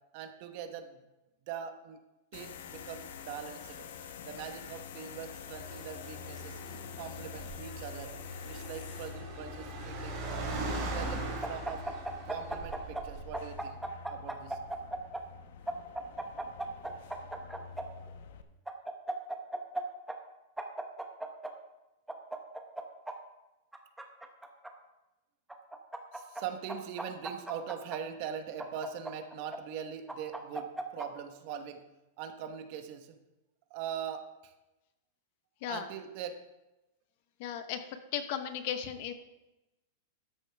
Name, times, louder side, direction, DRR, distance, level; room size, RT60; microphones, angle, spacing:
voice 1, 0.1-1.0 1.4-2.0 2.3-3.8 4.2-6.6 7.0-8.1 8.5-10.2 10.8-11.9 12.3-13.8 14.1-14.6 26.1-31.8 32.2-33.2 33.7-34.5 35.7-36.4, right 8 dB, 40° right, 7 dB, 1.0 m, -42 dB
sound 1, 2.3-18.4, left 6 dB, 65° left, 1.0 m, -46 dB
Car, 5.5-13.5, right 2 dB, 25° right, 3.5 m, -40 dB
sound 2, 11.4-13.0 13.3-15.2 15.7-17.8 18.7-19.8 20.1-20.2 20.6-21.5 22.1-23.1 23.7-24.7 25.5-26.4 26.7-28.0 28.6-29.6 30.1-31.1, right 2 dB, 5° right, 0.8 m, -37 dB
voice 2, 37.4-37.8 38.1-39.1, left 9 dB, 45° left, 9 dB, 1.0 m, -35 dB
13.0 x 10.0 x 3.4 m, 1.0 s
supercardioid pair, 165°, 0 cm